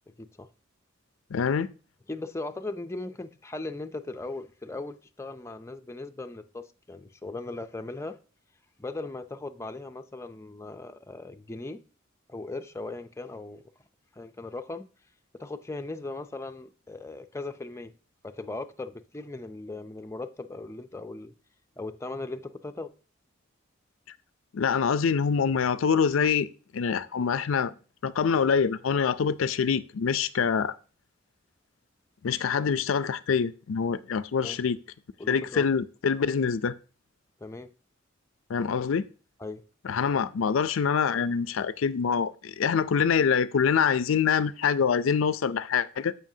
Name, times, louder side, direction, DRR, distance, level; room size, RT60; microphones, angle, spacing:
voice 1, 1.3-1.7 24.5-26.5 26.7-27.7 28.0-30.7 32.2-34.8 35.3-36.7 38.5-39.1 39.8-46.1, left 6 dB, 80° left, 0.4 m, -25 dB
voice 2, 2.1-8.2 8.8-11.8 12.3-13.6 14.1-14.9 15.3-17.9 18.2-21.3 21.8-22.9 34.4-34.6 35.2-35.7 37.4-37.7 39.4-39.6, left 2 dB, 15° left, 0.4 m, -38 dB
14.5 x 5.6 x 2.7 m
head